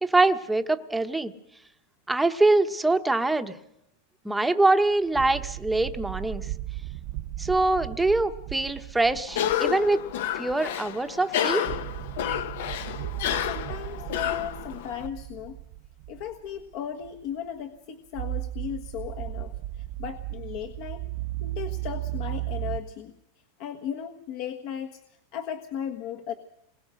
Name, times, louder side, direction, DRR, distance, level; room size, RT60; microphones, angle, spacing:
voice 1, 0.0-1.3 2.1-3.5 4.2-6.5 7.4-10.0 10.4-11.7, right 2 dB, 5° right, 8 dB, 1.0 m, -24 dB
sound 1, 4.9-11.1 11.5-16.7 17.0-17.2 18.1-22.8, right 16 dB, 45° right, 0.9 m, -36 dB
Cough, 9.3-15.1, left 10 dB, 70° left, 1.1 m, -30 dB
voice 2, 13.4-15.6 16.1-21.1 21.4-23.2 23.6-26.3, left 9 dB, 50° left, 5 dB, 1.4 m, -36 dB
27.5 x 21.5 x 6.4 m, 0.82 s
supercardioid pair, 155°, 0 cm